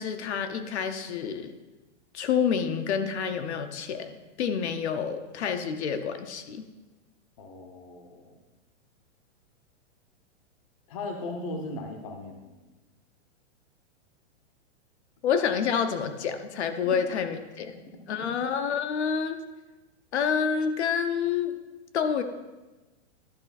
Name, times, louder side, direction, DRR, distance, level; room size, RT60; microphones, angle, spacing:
voice 1, 0.0-1.5 2.1-6.6 15.2-17.7 18.1-19.4 20.1-21.5 21.9-22.2, left 7 dB, 65° left, 7 dB, 0.8 m, -28 dB
voice 2, 7.4-8.4 10.9-12.6 16.8-17.0 18.2-18.3, left 2 dB, 30° left, 3 dB, 0.7 m, -38 dB
11.5 x 5.0 x 4.1 m, 1.2 s
hypercardioid pair, 170°, 37 cm